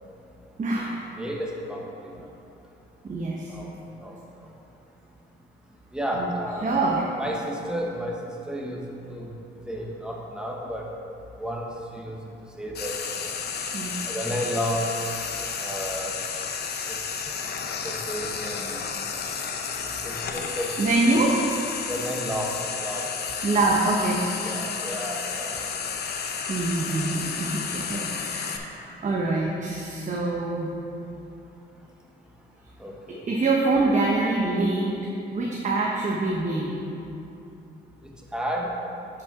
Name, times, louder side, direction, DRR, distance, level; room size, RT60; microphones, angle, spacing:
voice 1, 0.6-1.0 3.0-3.5 6.1-6.3 6.6-7.0 13.7-14.0 20.8-21.4 23.4-24.3 26.5-30.7 33.1-35.0 35.3-36.7, right 2 dB, 40° right, -3 dB, 1.1 m, -25 dB
voice 2, 1.2-1.8 3.5-3.7 4.0-4.1 5.9-6.7 7.2-8.2 8.5-8.8 9.1-9.3 9.7-10.9 11.4-11.7 11.9-12.1 12.6-13.0 14.0-15.0 15.6-16.2 17.8-18.8 20.0-20.7 21.9-23.1 24.4-25.6 32.8-33.2 38.3-38.8, equal, 5° right, -2 dB, 1.4 m, -31 dB
Frying (food), 12.7-28.6, left 6 dB, 55° left, 0.8 m, -32 dB
10.5 x 5.9 x 3.7 m, 2.8 s
cardioid pair, 90°, 20 cm